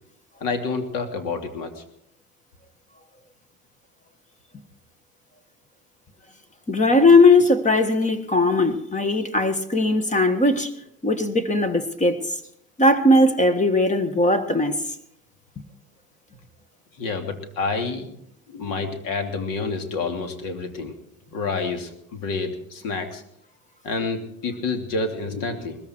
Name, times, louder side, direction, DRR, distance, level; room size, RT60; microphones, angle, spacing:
voice 1, 0.4-1.8 17.0-18.1 18.5-20.9 21.3-23.2 23.8-25.8, left 4 dB, 60° left, 5 dB, 3.1 m, -28 dB
voice 2, 6.7-10.7 11.0-12.2 12.8-14.8, left 2 dB, 20° left, 10 dB, 1.6 m, -18 dB
20.0 x 14.0 x 4.6 m, 0.74 s
supercardioid pair, 105°, 37 cm